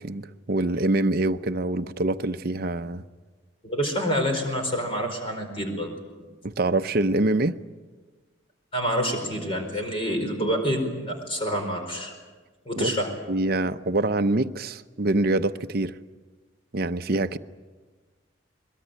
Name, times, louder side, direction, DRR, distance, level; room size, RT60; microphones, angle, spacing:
voice 1, 0.0-3.0 6.4-7.6 12.8-13.0 13.3-16.0 16.7-17.4, right 2 dB, 50° right, 0.7 m, -25 dB
voice 2, 3.6-5.9 8.7-12.1 12.7-13.1, equal, 25° left, 4.6 m, -27 dB
22.0 x 22.0 x 9.1 m
head